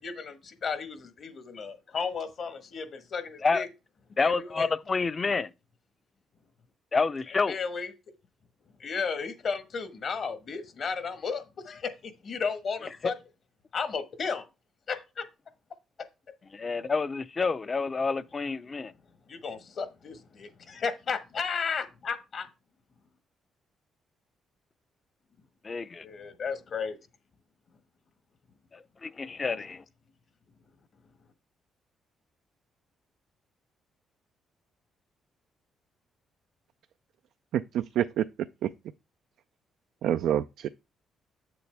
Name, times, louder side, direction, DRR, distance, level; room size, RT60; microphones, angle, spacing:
voice 1, 0.0-3.7 4.2-4.7 7.3-7.9 8.8-13.1 13.7-14.4 14.9-15.3 19.3-22.5 26.0-27.0, left 5 dB, 55° left, 1.3 m, -34 dB
voice 2, 4.2-5.5 6.9-7.5 16.5-18.9 25.6-26.0 28.7-29.8, left 4 dB, 35° left, 0.6 m, -28 dB
voice 3, 37.5-38.3 38.6-38.7 40.0-40.7, right 11 dB, 80° right, 0.3 m, -27 dB
8.2 x 6.9 x 3.4 m
cardioid pair, 90°, 0 cm